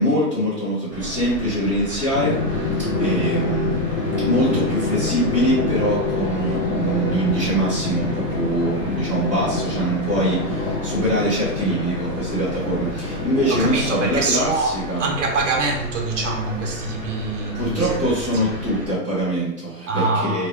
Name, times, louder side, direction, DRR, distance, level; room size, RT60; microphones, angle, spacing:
voice 1, 0.0-3.8 4.1-15.1 17.5-20.5, right 1 dB, 20° left, 0.8 m, -23 dB
sound 1, 0.9-18.9, right 1 dB, 15° right, 1.1 m, -35 dB
Drum, 2.1-14.5, left 3 dB, 75° left, 1.1 m, -26 dB
voice 2, 13.5-18.1 19.9-20.5, right 3 dB, 50° right, 0.7 m, -24 dB
3.2 x 2.4 x 3.3 m
hypercardioid pair, 180°, 48 cm